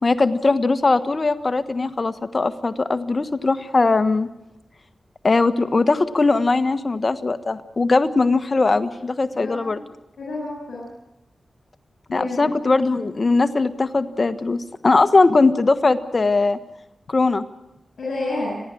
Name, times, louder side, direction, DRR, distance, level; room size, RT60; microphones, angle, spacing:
voice 1, 0.0-4.3 5.2-9.8 12.1-16.6 17.1-17.4, left 3 dB, 45° left, 11 dB, 1.4 m, -20 dB
voice 2, 9.3-9.8 10.2-10.8 12.1-12.5 18.0-18.6, left 2 dB, 80° left, -4 dB, 7.3 m, -29 dB
30.0 x 11.0 x 10.0 m, 0.91 s
cardioid pair, 60°, 0 cm